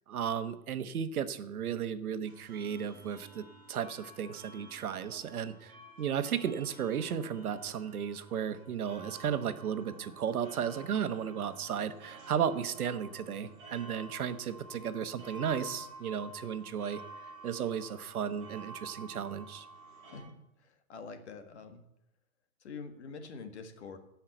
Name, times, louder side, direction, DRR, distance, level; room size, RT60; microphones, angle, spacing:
voice 1, 0.1-19.7, right 8 dB, 75° right, 11 dB, 1.2 m, -34 dB
sound 1, 2.2-20.2, right 2 dB, 10° right, 3.5 m, -51 dB
voice 2, 20.1-21.8 22.6-24.0, left 4 dB, 50° left, 7 dB, 1.6 m, -46 dB
15.0 x 5.8 x 7.8 m, 0.85 s
hypercardioid pair, 180°, 44 cm